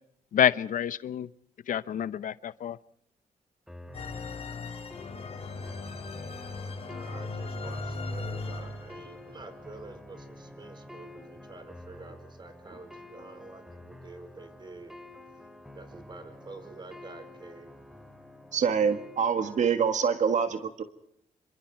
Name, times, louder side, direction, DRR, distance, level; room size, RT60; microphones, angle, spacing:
voice 1, 0.3-1.3 1.7-2.8, left 10 dB, 70° left, 17 dB, 0.8 m, -27 dB
sound 1, 3.7-19.7, left 1 dB, 5° right, 2.7 m, -49 dB
sound 2, 3.9-9.2, left 3 dB, 45° left, 3.1 m, -37 dB
voice 2, 6.9-18.1, right 3 dB, 35° right, 9 dB, 5.1 m, -48 dB
voice 3, 18.5-20.8, right 6 dB, 60° right, 9 dB, 1.7 m, -25 dB
27.0 x 26.5 x 4.6 m, 0.69 s
cardioid pair, 115°, 14 cm